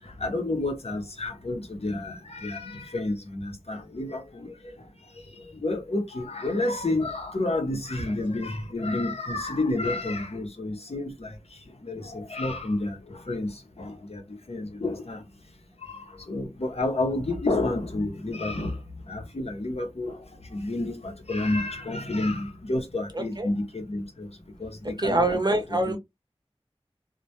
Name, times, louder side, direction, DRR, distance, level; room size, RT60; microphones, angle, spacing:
voice 1, 0.2-4.5 5.6-11.3 11.8-13.0 13.3-13.5 13.8-14.2 14.5-15.2 16.3-18.7 19.1-20.1 20.5-24.3 24.6-24.7 25.0-26.0, left 2 dB, 85° left, 0.7 m, -30 dB
voice 2, 23.1-23.5 25.0-26.0, right 2 dB, 40° right, 0.6 m, -25 dB
2.1 x 2.1 x 2.8 m
wide cardioid pair, 45°, 10 cm